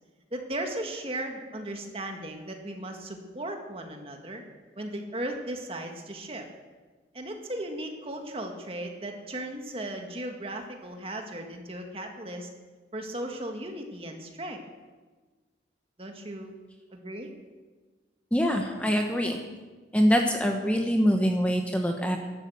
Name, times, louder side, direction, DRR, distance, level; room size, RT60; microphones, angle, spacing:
voice 1, 0.3-4.4 4.8-6.5 7.1-12.5 12.9-14.6 16.0-16.5 16.9-17.3, right 1 dB, 30° right, 3 dB, 1.8 m, -36 dB
voice 2, 18.3-19.4 19.9-22.2, equal, 5° left, 2 dB, 1.0 m, -24 dB
12.5 x 12.0 x 7.9 m, 1.3 s
head